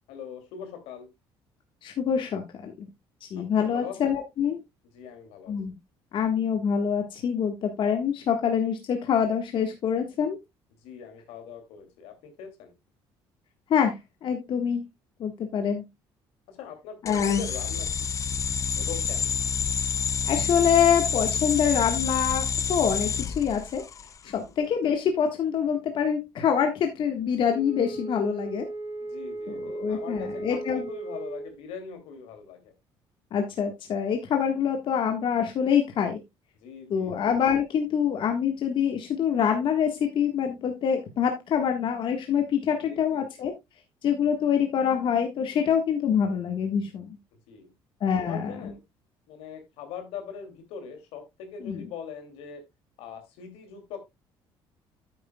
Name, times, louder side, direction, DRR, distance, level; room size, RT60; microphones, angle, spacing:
voice 1, 0.1-1.1 3.6-4.2 4.9-5.5 10.8-12.7 16.5-18.1 18.8-19.3 24.4-24.5 29.0-32.7 36.6-37.1 42.8-43.4 47.5-47.7 48.1-48.8 49.3-52.6 53.0-54.0, left 7 dB, 85° left, 5 dB, 2.6 m, -42 dB
voice 2, 1.8-2.9 3.3-4.6 5.5-5.7 6.1-10.4 13.7-13.9 14.2-14.8 15.2-15.8 17.0-17.4 20.3-23.8 24.2-28.6 29.5-30.8 33.3-36.2 36.9-43.5 44.0-47.2 48.0-48.5 51.6-51.8, left 7 dB, 55° left, 4 dB, 1.5 m, -25 dB
sound 1, 17.1-24.2, left 6 dB, 30° left, 0.5 m, -28 dB
Wind instrument woodwind instrument, 27.4-31.6, right 2 dB, 85° right, 4.5 m, -36 dB
9.4 x 9.0 x 2.3 m, 0.21 s
cardioid pair, 105°, 10 cm